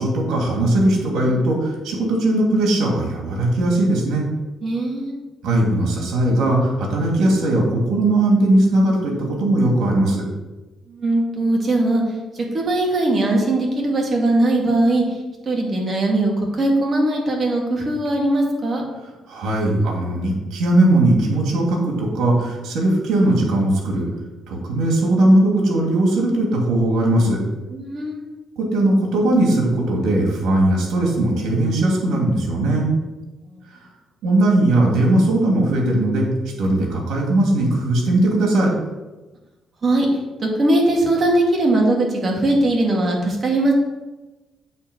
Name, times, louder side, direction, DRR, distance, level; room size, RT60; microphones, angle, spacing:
voice 1, 0.0-4.2 5.4-9.1 9.4-10.2 19.3-24.0 24.5-27.4 28.6-32.9 33.7-33.8 34.2-36.3 36.6-38.7, right 1 dB, 85° right, -1 dB, 2.5 m, -19 dB
voice 2, 4.6-5.2 10.9-12.0 12.3-15.0 15.5-18.8 27.7-28.3 33.5-33.6 39.8-40.1 40.4-43.7, right 2 dB, 40° right, -1 dB, 2.5 m, -20 dB
8.5 x 4.5 x 6.1 m, 1.1 s
cardioid pair, 90°, 0 cm